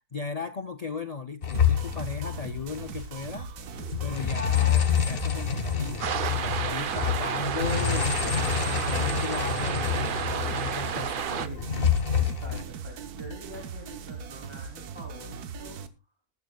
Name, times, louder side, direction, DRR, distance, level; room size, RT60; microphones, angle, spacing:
voice 1, 0.1-3.5 4.0-11.5, left 5 dB, 80° left, 0.3 m, -36 dB
sound 1, 1.4-3.0 3.3-3.5 3.8-10.9 11.3-12.6, left 8 dB, 40° left, 1.3 m, -27 dB
sound 2, 1.5-15.9, right 6 dB, 90° right, 1.5 m, -40 dB
sound 3, 6.0-11.5, right 7 dB, 50° right, 0.6 m, -31 dB
voice 2, 6.8-7.3 11.3-11.7 12.2-15.8, equal, 15° right, 3.0 m, -45 dB
20.0 x 10.0 x 2.3 m
omnidirectional pair, 1.6 m